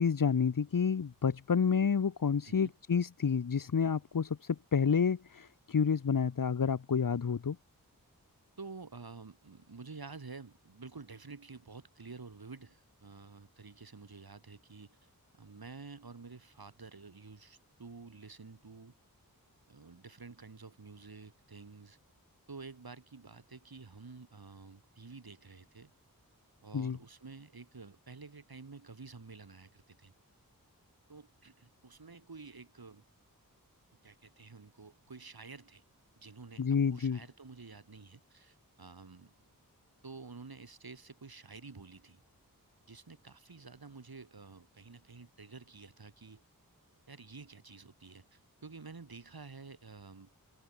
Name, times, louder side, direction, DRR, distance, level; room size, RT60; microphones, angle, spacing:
voice 1, 0.0-7.6 26.7-27.0 36.6-37.2, left 6 dB, 65° left, 1.0 m, -29 dB
voice 2, 8.6-15.1 15.4-18.9 19.7-22.0 22.5-25.9 26.6-30.1 31.1-33.0 34.0-35.8 36.2-39.3 40.0-42.2 42.9-46.4 47.1-50.3, right 4 dB, 90° right, 7.3 m, -50 dB
wide cardioid pair, 55°, 36 cm